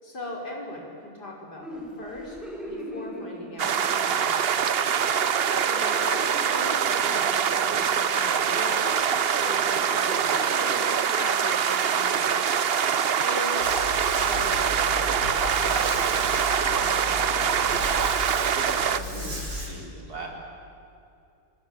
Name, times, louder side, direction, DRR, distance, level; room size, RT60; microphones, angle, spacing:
voice 1, 0.0-2.4 2.7-4.5 5.7-12.5 13.2-18.2, left 1 dB, 55° left, -1 dB, 6.0 m, -39 dB
sound 1, 1.6-4.1 4.4-4.7 5.0-8.4 8.7-9.1 9.4-13.5 13.8-13.9 14.4-18.5 19.0-19.4, equal, ahead, 5.4 m, -41 dB
sound 2, 3.6-19.0, right 7 dB, 65° right, 0.5 m, -24 dB
voice 2, 6.8-7.2 18.5-20.3, right 2 dB, 50° right, -1 dB, 5.1 m, -39 dB
sound 3, 13.6-19.7, left 2 dB, 85° right, 5.6 m, -36 dB
30.0 x 20.5 x 9.1 m, 2.6 s
omnidirectional pair, 2.1 m